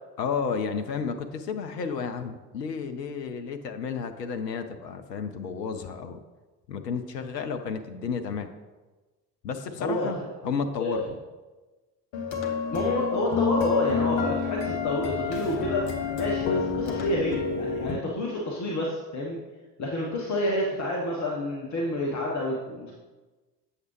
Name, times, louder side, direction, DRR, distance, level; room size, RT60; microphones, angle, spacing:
voice 1, 0.2-6.2 6.7-8.5 9.4-10.2 10.4-11.2, left 6 dB, 80° left, 7 dB, 0.6 m, -32 dB
voice 2, 9.8-10.2 10.8-11.1 12.7-19.4 19.8-22.9, left 1 dB, 35° left, -2 dB, 1.2 m, -29 dB
sound 1, 12.1-18.0, left 5 dB, 55° left, 1.2 m, -29 dB
7.9 x 6.6 x 3.0 m, 1.2 s
figure-of-eight pair, 55°, 49 cm